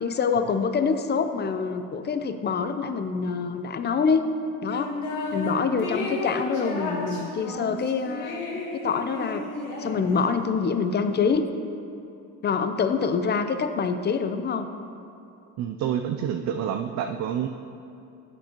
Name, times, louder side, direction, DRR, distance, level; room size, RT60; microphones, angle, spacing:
voice 1, 0.0-4.3 4.6-5.0 5.3-9.5 9.8-11.5 12.4-14.7, left 5 dB, 25° left, 9 dB, 0.6 m, -26 dB
sound 1, 4.7-5.5 5.8-10.4, left 2 dB, 55° left, 2.5 m, -33 dB
voice 2, 15.6-17.5, right 9 dB, 45° right, 5 dB, 0.5 m, -28 dB
13.0 x 8.6 x 3.0 m, 2.6 s
supercardioid pair, 90°, 38 cm